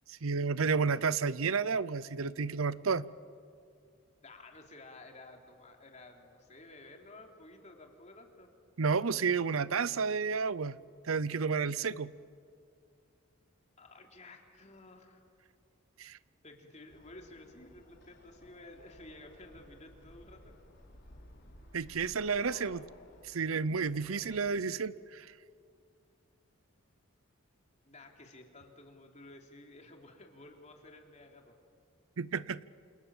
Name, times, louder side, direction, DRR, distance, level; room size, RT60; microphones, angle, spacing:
voice 1, 0.1-3.1 8.8-10.8 11.0-12.1 16.0-16.2 21.7-22.8 23.3-25.3 32.2-32.6, right 5 dB, 80° right, 18 dB, 0.7 m, -31 dB
voice 2, 4.2-8.5 13.8-15.3 16.4-20.5 22.4-23.2 23.9-24.6 27.9-31.5, left 2 dB, 35° left, 2 dB, 3.4 m, -53 dB
sound 1, 16.9-24.5, equal, 55° left, 4.5 m, -57 dB
28.5 x 28.0 x 7.3 m, 2.4 s
head